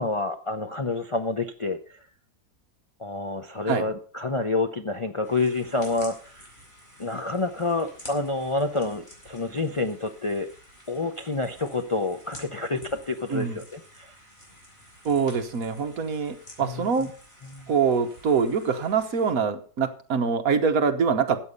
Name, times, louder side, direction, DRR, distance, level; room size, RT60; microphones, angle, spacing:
voice 1, 0.0-1.8 3.0-6.4 7.0-10.5 10.9-14.1 16.6-16.8 17.5-17.7, left 3 dB, 50° left, 5 dB, 0.3 m, -28 dB
sound 1, 5.2-19.3, equal, 25° left, 4.5 m, -49 dB
voice 2, 15.0-17.1 17.7-21.4, right 6 dB, 60° right, 7 dB, 1.5 m, -24 dB
13.5 x 8.2 x 5.4 m, 0.41 s
omnidirectional pair, 1.8 m